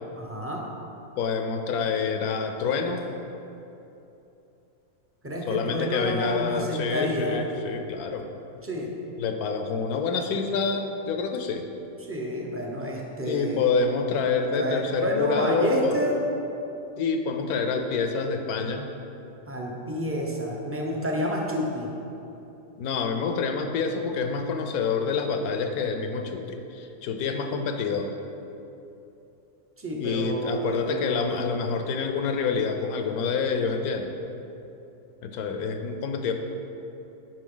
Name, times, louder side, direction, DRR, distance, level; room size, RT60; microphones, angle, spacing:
voice 1, 0.1-0.6 5.2-7.4 8.6-8.9 12.0-13.6 14.5-16.2 19.5-21.9 29.8-31.5, equal, 15° right, -2 dB, 0.6 m, -29 dB
voice 2, 1.2-3.0 5.5-8.3 9.2-11.7 13.2-16.0 17.0-18.9 22.8-28.1 30.0-34.1 35.2-36.3, left 5 dB, 70° left, 5 dB, 1.1 m, -27 dB
9.9 x 5.4 x 3.9 m, 2.9 s
omnidirectional pair, 1.7 m